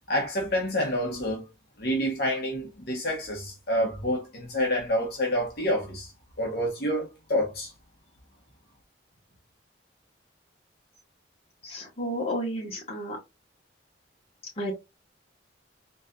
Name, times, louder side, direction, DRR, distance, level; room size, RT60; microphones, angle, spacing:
voice 1, 0.1-1.4 1.8-6.1 6.4-7.7, equal, 55° left, 1.3 m, -28 dB
voice 2, 11.6-13.2 14.6-14.7, equal, 35° left, 1.6 m, -32 dB
4.2 x 3.3 x 2.5 m
head